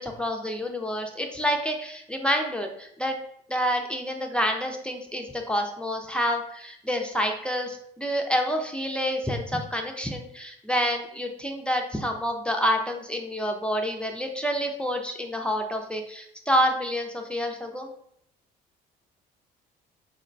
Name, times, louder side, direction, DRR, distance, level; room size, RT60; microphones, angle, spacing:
voice 1, 0.0-3.2 3.5-17.9, equal, 5° left, 2 dB, 0.4 m, -28 dB
3.9 x 2.1 x 3.8 m, 0.71 s
cardioid pair, 110°, 17 cm